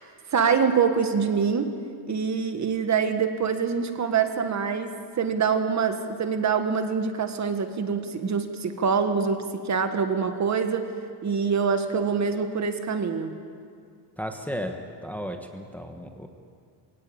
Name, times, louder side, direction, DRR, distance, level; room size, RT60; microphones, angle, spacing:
voice 1, 0.3-1.7 2.1-10.9 11.2-13.4, right 6 dB, 40° right, 7 dB, 1.6 m, -25 dB
voice 2, 14.2-16.3, equal, 5° left, 4 dB, 1.2 m, -34 dB
23.0 x 17.5 x 8.7 m, 2.2 s
cardioid pair, 150°, 44 cm